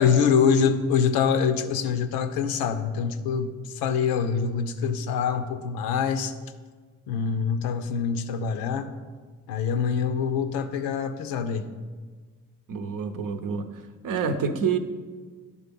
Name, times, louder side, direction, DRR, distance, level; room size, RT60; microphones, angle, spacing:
voice 1, 0.0-6.3 7.1-8.9 9.5-11.7, left 6 dB, 85° left, 9 dB, 0.6 m, -25 dB
voice 2, 12.7-13.7 14.0-14.8, right 6 dB, 65° right, 8 dB, 0.7 m, -27 dB
10.0 x 3.7 x 5.2 m, 1.5 s
hypercardioid pair, 40°, 35 cm